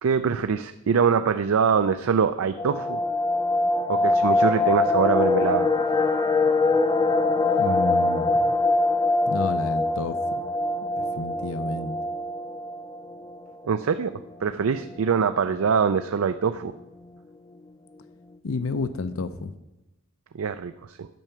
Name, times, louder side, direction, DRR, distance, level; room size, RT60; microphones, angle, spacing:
voice 1, 0.0-3.0 3.9-5.7 13.7-14.1 14.4-16.7 20.3-21.1, right 6 dB, 90° right, 10 dB, 0.4 m, -23 dB
sound 1, 2.6-13.4 13.7-13.8 14.1-14.3 14.7-15.2 15.7-15.8 16.0-16.5 16.8-16.9, left 2 dB, 20° left, 0.4 m, -23 dB
voice 2, 7.6-8.6 9.3-10.2 10.9-12.0 18.4-19.5, left 3 dB, 80° left, 12 dB, 0.6 m, -30 dB
9.1 x 5.6 x 7.1 m, 0.99 s
head